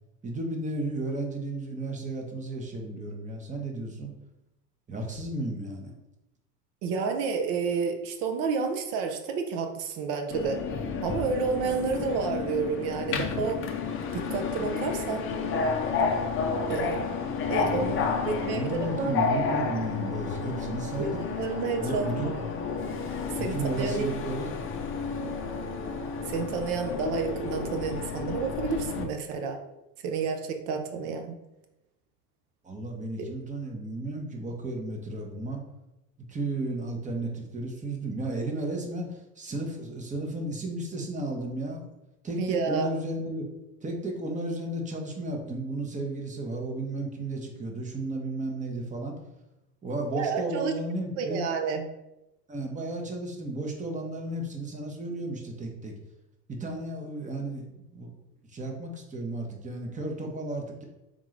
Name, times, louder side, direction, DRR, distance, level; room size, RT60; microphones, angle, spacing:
voice 1, 0.2-4.1 4.9-5.9 17.6-21.2 21.8-22.5 23.4-24.5 32.6-35.6 36.3-41.8 42.2-43.4 43.8-49.1 49.8-51.4 52.5-55.9 56.5-58.1 58.5-60.8, right 2 dB, 15° right, 2 dB, 0.9 m, -33 dB
voice 2, 6.8-10.6 11.0-13.7 14.1-15.2 16.7-17.1 17.5-18.0 18.2-19.2 21.0-22.1 23.4-24.0 26.3-29.6 30.0-31.4 33.2-33.3 42.4-42.9 50.1-50.7 51.2-51.9, right 5 dB, 60° right, 5 dB, 0.9 m, -30 dB
Subway metro underground, 10.3-29.0, left 5 dB, 25° left, 0.5 m, -31 dB
3.7 x 3.6 x 3.2 m, 0.94 s
hypercardioid pair, 85°, 48 cm